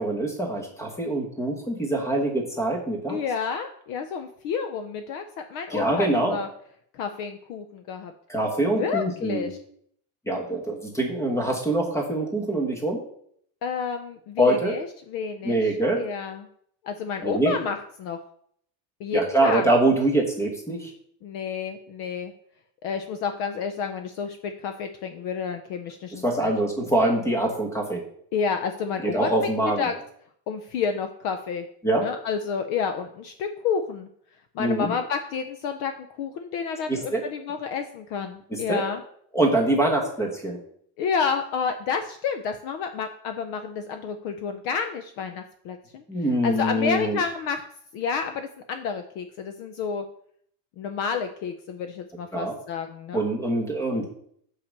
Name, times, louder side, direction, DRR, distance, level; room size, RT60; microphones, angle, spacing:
voice 1, 0.0-3.2 5.7-6.4 8.3-9.5 10.3-13.0 14.4-14.7 15.4-16.0 17.2-17.5 19.1-20.9 26.2-28.0 29.0-29.9 31.8-32.0 34.6-34.9 36.9-37.2 38.5-38.8 39.3-40.6 46.1-47.2 52.3-52.5 53.1-54.1, right 1 dB, 5° left, 1 dB, 1.2 m, -24 dB
voice 2, 3.1-6.5 6.9-8.1 8.6-9.6 13.6-15.6 16.0-16.5 16.8-18.2 19.0-19.6 21.2-22.3 22.8-26.5 28.3-29.9 30.5-31.7 32.0-34.1 34.5-39.0 41.0-46.0 46.4-47.6 47.9-50.0 50.8-53.2, left 6 dB, 50° left, 7 dB, 0.6 m, -30 dB
5.7 x 4.9 x 6.6 m, 0.65 s
cardioid pair, 175°, 45 cm